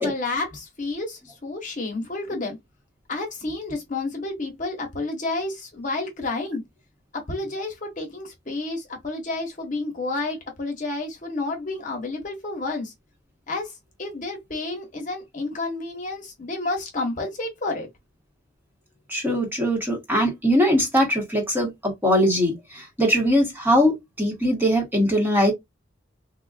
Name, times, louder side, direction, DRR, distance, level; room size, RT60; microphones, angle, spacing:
voice 1, 0.0-2.6 3.1-6.6 7.1-12.9 13.5-13.7 14.0-17.9, left 2 dB, 40° left, 1.1 m, -30 dB
voice 2, 19.1-25.5, equal, 10° right, 1.2 m, -21 dB
3.7 x 2.4 x 2.4 m
head